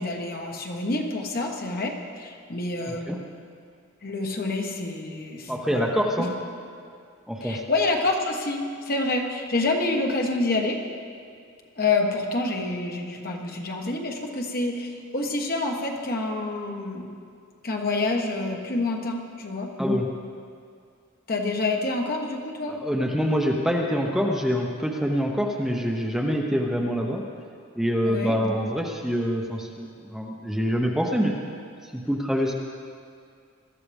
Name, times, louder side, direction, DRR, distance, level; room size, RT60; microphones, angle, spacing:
voice 1, 0.0-3.1 4.0-5.9 7.4-10.8 11.8-17.1 17.6-19.7 21.3-22.7 28.0-28.4, left 2 dB, 45° left, 1 dB, 1.4 m, -27 dB
voice 2, 5.5-6.3 7.3-7.6 19.8-20.1 22.7-27.2 27.8-31.3 31.9-32.5, equal, ahead, 0 dB, 0.9 m, -25 dB
21.0 x 13.5 x 3.6 m, 2.3 s
head